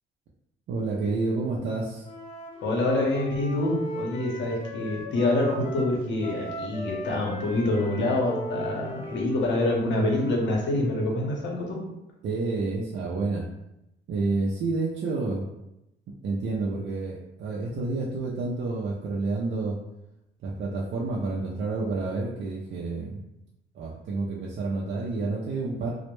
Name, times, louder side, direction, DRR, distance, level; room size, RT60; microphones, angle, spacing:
voice 1, 0.7-2.1 11.8-13.4 14.1-15.5 16.2-19.8 20.4-23.2 23.7-25.9, right 3 dB, 65° right, -3 dB, 0.4 m, -29 dB
Wind instrument woodwind instrument, 2.0-10.5, right 1 dB, 30° left, 0.5 m, -38 dB
voice 2, 2.6-11.8, left 2 dB, 70° left, -1 dB, 0.7 m, -26 dB
2.1 x 2.0 x 3.0 m, 0.87 s
cardioid pair, 90°, 20 cm